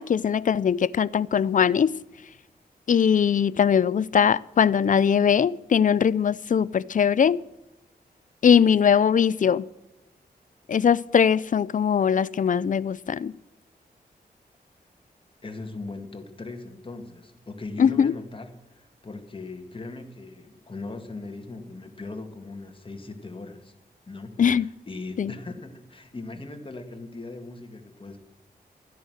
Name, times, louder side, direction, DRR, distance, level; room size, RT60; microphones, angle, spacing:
voice 1, 0.0-1.9 2.9-7.4 8.4-9.7 10.7-13.3 17.8-18.1 24.4-24.7 25.2-25.3, left 7 dB, 55° left, 0.4 m, -21 dB
voice 2, 15.4-23.7 24.1-28.2, left 3 dB, 30° left, 1.9 m, -39 dB
13.5 x 10.0 x 6.4 m
wide cardioid pair, 85°, 16 cm